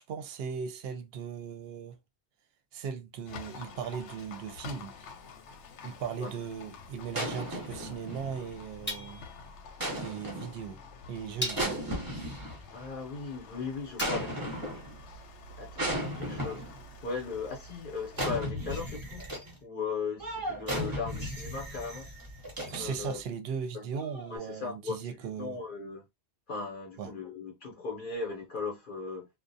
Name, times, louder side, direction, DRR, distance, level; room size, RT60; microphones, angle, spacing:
voice 1, 0.0-2.0 2.7-4.9 5.8-9.3 9.9-10.8 11.1-11.9 22.7-25.6 27.0-27.1, right 6 dB, 65° right, 0.7 m, -38 dB
Livestock farm animals working animals, 3.3-18.5, left 3 dB, 85° left, 0.9 m, -49 dB
sound 1, 7.1-8.6 9.8-10.6 11.5-12.9 14.0-15.0 15.8-16.8 18.1-19.6 20.2-23.1 23.9-24.4, equal, 20° right, 0.7 m, -35 dB
sound 2, 8.9-9.5 10.5-10.6 11.4-12.0 14.0-14.5, left 1 dB, 15° left, 0.5 m, -38 dB
voice 2, 12.7-14.8 15.6-16.7 17.0-19.3 19.6-22.1 22.7-23.2 23.7-23.9 24.3-25.1 25.4-26.0 26.5-29.3, left 4 dB, 55° left, 0.7 m, -37 dB
2.3 x 2.0 x 2.5 m
omnidirectional pair, 1.2 m